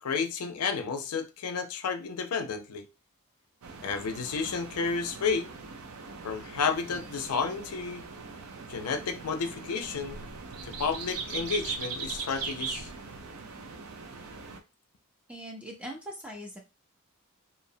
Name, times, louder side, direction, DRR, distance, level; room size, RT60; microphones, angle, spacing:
voice 1, 0.0-2.9 3.8-5.5 6.2-8.1 8.7-10.2 10.6-12.9, left 5 dB, 90° left, 0.5 m, -31 dB
sound 1, 3.6-14.6, right 5 dB, 75° right, 0.5 m, -40 dB
voice 2, 15.3-16.6, equal, 5° right, 0.6 m, -41 dB
2.8 x 2.0 x 2.7 m
head